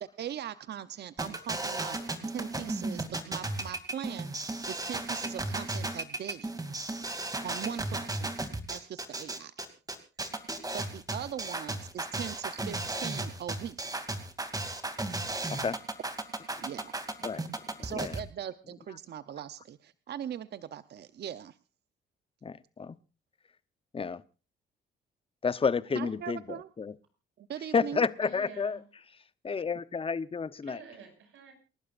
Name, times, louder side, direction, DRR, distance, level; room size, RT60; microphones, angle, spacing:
voice 1, 0.0-2.0 2.3-6.5 7.4-9.5 10.7-13.8 16.6-16.9 17.8-21.6 25.9-26.7 27.4-28.0, right 9 dB, 55° right, 0.8 m, -40 dB
sound 1, 1.2-18.2, right 2 dB, 20° right, 2.7 m, -35 dB
voice 2, 22.4-23.0 23.9-24.2 25.4-26.4 26.8-26.9 27.7-28.8 29.4-30.8, left 5 dB, 30° left, 0.9 m, -30 dB
voice 3, 28.2-28.8 30.6-31.5, right 5 dB, 75° right, 6.0 m, -49 dB
28.0 x 12.0 x 2.5 m
cardioid pair, 90°, 20 cm